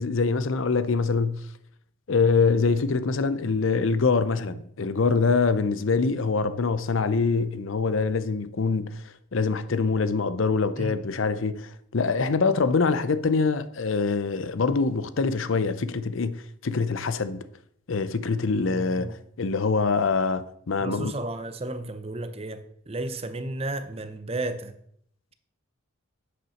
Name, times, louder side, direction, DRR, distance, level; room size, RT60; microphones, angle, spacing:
voice 1, 0.0-1.4 2.1-17.4 17.9-21.1, left 4 dB, 70° left, 0.6 m, -24 dB
voice 2, 18.6-19.2 20.8-24.7, right 2 dB, 30° right, 0.6 m, -33 dB
8.1 x 6.0 x 6.3 m
head